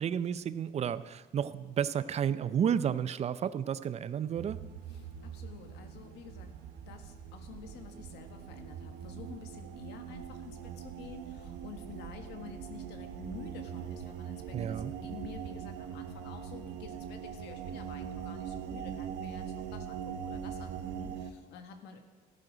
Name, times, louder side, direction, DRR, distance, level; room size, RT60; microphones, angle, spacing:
voice 1, 0.0-4.6 14.5-14.9, right 8 dB, 40° right, 15 dB, 0.5 m, -32 dB
sound 1, 4.3-21.3, right 8 dB, 90° right, 1.0 m, -42 dB
voice 2, 4.9-6.5 6.9-22.0, left 7 dB, 85° left, 6 dB, 1.5 m, -50 dB
14.0 x 11.0 x 5.1 m, 1.4 s
cardioid pair, 110°, 17 cm